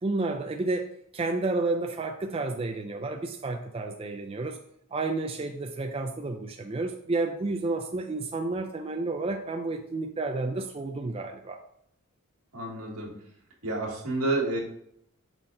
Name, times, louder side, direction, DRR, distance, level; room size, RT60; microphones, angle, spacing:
voice 1, 0.0-0.9 1.1-4.6 4.9-11.6, right 3 dB, 25° right, 3 dB, 0.4 m, -31 dB
voice 2, 12.5-13.1 13.6-14.6, right 2 dB, 80° right, -2 dB, 2.0 m, -29 dB
6.1 x 4.2 x 3.8 m, 0.71 s
head